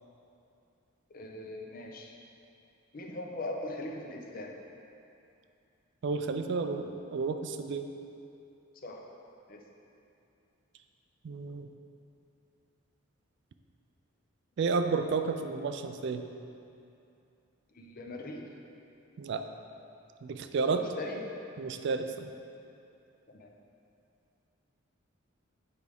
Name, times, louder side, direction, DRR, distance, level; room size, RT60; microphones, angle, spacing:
voice 1, 1.1-2.1 2.9-4.5 8.7-9.0 9.5-9.6 17.7-18.5 20.7-21.2 23.3-23.5, left 2 dB, 45° left, 1 dB, 0.6 m, -40 dB
voice 2, 6.0-7.9 11.2-11.7 14.6-16.2 19.2-19.4 20.2-20.8 21.6-22.3, right 4 dB, 55° right, 7 dB, 0.3 m, -31 dB
8.1 x 4.8 x 3.5 m, 2.7 s
head